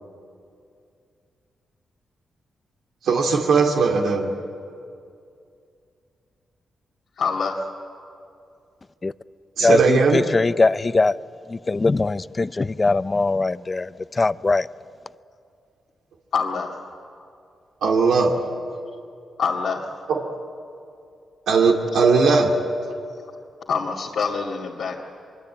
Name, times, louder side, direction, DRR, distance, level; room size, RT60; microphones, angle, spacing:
voice 1, 3.0-4.3 9.6-10.3 17.8-18.3 20.1-20.2 21.5-22.5, right 4 dB, 85° right, 2.4 m, -18 dB
voice 2, 7.2-7.7 16.3-16.7 19.4-19.9 23.7-25.0, left 5 dB, 80° left, 2.2 m, -25 dB
voice 3, 9.6-11.2 11.5-13.9 14.2-14.7, left 3 dB, 30° left, 0.6 m, -21 dB
24.5 x 22.5 x 8.7 m
cardioid pair, 75°, 0 cm